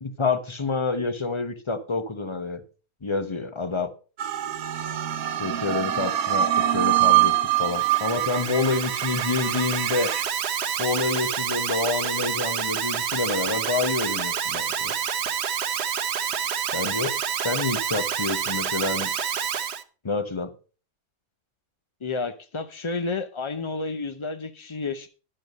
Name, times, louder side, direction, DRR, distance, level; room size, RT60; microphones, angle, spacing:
voice 1, 0.0-2.6 3.0-3.9 5.4-10.1 10.8-14.9 16.7-17.1 17.4-19.1 20.0-20.5, left 3 dB, 25° left, 0.8 m, -28 dB
sound 1, 4.2-10.2, right 13 dB, 85° right, 1.4 m, -24 dB
Alarm, 7.5-19.8, right 8 dB, 55° right, 0.9 m, -28 dB
voice 2, 22.0-25.1, left 3 dB, 45° left, 0.3 m, -31 dB
11.0 x 6.6 x 5.2 m
omnidirectional pair, 1.5 m